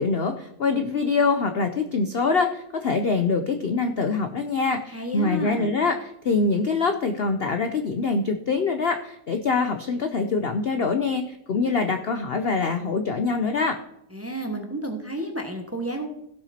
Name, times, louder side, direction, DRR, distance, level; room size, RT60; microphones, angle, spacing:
voice 1, 0.0-13.8, left 4 dB, 55° left, 7 dB, 0.7 m, -24 dB
voice 2, 4.9-5.7 14.1-16.1, right 1 dB, 10° right, 4 dB, 1.0 m, -31 dB
16.5 x 6.0 x 4.3 m, 0.79 s
omnidirectional pair, 1.8 m